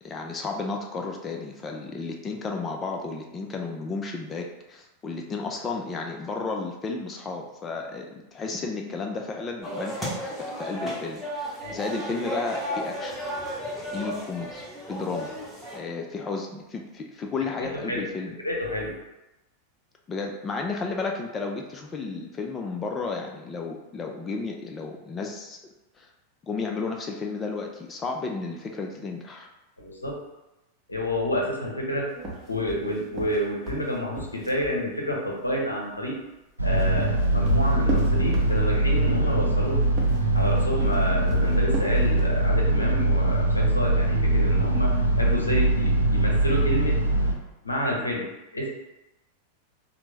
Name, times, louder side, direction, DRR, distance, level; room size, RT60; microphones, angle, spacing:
voice 1, 0.0-13.2 13.9-15.3 15.7-18.4 20.1-25.6 26.0-26.1 26.4-29.5, left 4 dB, 20° left, 1 dB, 0.3 m, -33 dB
sound 1, 9.6-15.8, equal, ahead, 0.9 m, -33 dB
voice 2, 18.4-19.0 29.8-30.2 30.9-32.2 32.5-36.2 36.6-39.8 40.3-47.0 47.6-48.7, equal, 80° left, -2 dB, 0.6 m, -29 dB
sound 2, 32.2-34.8 36.5-38.9 39.8-42.4, right 1 dB, 25° right, 0.7 m, -35 dB
sound 3, 36.6-47.3, right 2 dB, 85° right, 0.4 m, -22 dB
3.3 x 2.0 x 3.1 m, 0.97 s
figure-of-eight pair, 90°, 0 cm